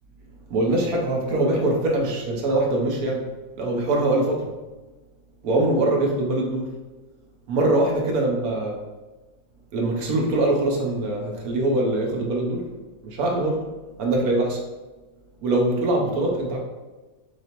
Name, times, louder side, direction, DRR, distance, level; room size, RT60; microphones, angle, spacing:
voice 1, 0.5-3.2 3.6-4.5 5.4-6.7 7.5-8.8 9.7-12.7 13.0-13.7 14.0-14.6 15.4-16.6, right 2 dB, 85° right, 0 dB, 1.4 m, -23 dB
6.3 x 2.9 x 2.9 m, 1.2 s
omnidirectional pair, 1.5 m